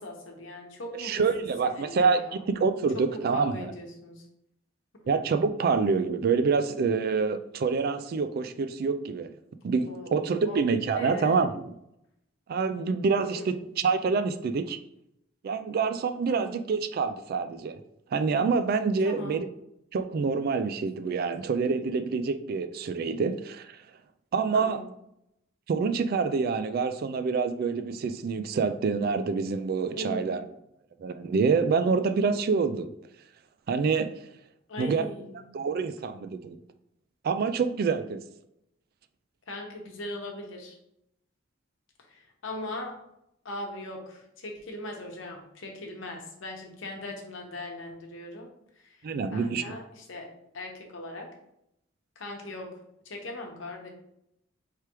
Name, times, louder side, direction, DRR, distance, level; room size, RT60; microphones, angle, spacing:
voice 1, 0.0-2.4 2.9-4.3 9.8-10.6 10.9-11.4 13.3-13.5 16.3-16.5 19.0-19.4 24.5-24.9 29.9-30.5 34.7-35.4 39.5-40.8 42.1-43.0 43.4-48.5 48.8-50.3 50.5-51.3 52.2-52.8 53.0-53.9, left 1 dB, 70° left, 1 dB, 1.0 m, -39 dB
voice 2, 0.9-3.7 5.1-9.3 9.6-11.7 12.5-14.8 15.4-17.8 18.1-19.5 19.9-23.8 24.3-24.8 25.7-30.4 31.0-32.9 33.7-34.1 34.8-35.1 35.5-36.6 37.2-38.2 49.0-49.6, right 5 dB, 50° right, 11 dB, 0.3 m, -26 dB
4.6 x 3.3 x 3.0 m, 0.79 s
head